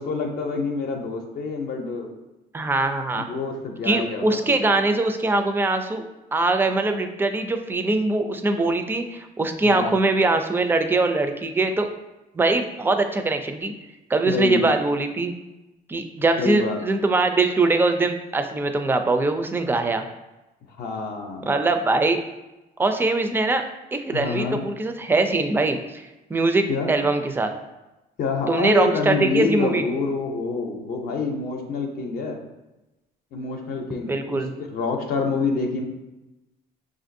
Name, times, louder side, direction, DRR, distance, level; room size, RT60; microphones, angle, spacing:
voice 1, 0.0-2.1 3.1-4.6 9.6-9.9 14.3-14.7 16.4-16.8 20.8-21.5 24.1-24.6 26.7-26.9 28.2-32.4 33.3-35.8, left 4 dB, 65° left, 2 dB, 0.6 m, -27 dB
voice 2, 2.5-3.3 3.9-6.0 6.3-11.9 12.3-13.7 14.1-15.3 15.9-20.0 21.5-22.2 22.8-23.6 23.9-26.0 26.3-27.5 28.5-29.9 34.1-34.5, right 2 dB, 15° right, 7 dB, 0.3 m, -22 dB
5.7 x 2.5 x 2.6 m, 1.0 s
cardioid pair, 110°, 17 cm